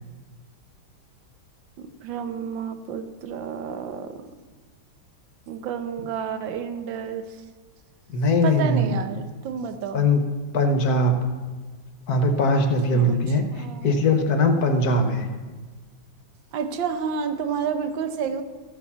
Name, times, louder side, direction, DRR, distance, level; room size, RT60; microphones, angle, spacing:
voice 1, 1.8-4.2 5.5-7.4 8.4-10.1 12.9-13.9 14.5-14.8 16.5-18.4, right 7 dB, 70° right, 9 dB, 1.5 m, -30 dB
voice 2, 8.1-9.0 9.9-10.2 10.5-11.1 12.1-15.3, left 1 dB, 55° left, 6 dB, 1.3 m, -21 dB
14.0 x 7.1 x 5.6 m, 1.3 s
omnidirectional pair, 2.3 m